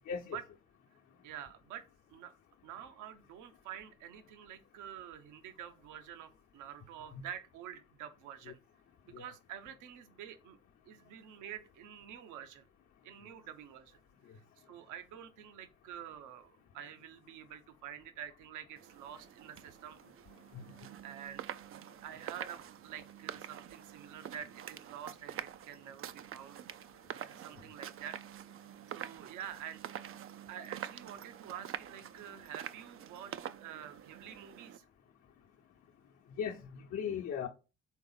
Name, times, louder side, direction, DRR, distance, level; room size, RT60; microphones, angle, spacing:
voice 1, 0.1-0.4 8.4-8.5 9.1-9.3 20.5-20.6 36.4-37.5, left 7 dB, 55° left, 1.0 m, -38 dB
voice 2, 1.2-2.3 2.6-8.6 9.1-10.6 10.9-12.7 13.0-14.0 14.7-20.0 20.8-26.6 27.1-28.2 28.9-29.8 30.5-34.9, right 9 dB, 70° right, 0.9 m, -48 dB
sound 1, 18.8-34.8, right 10 dB, 45° right, 0.5 m, -47 dB
4.6 x 3.9 x 5.6 m
hypercardioid pair, 55°, 32 cm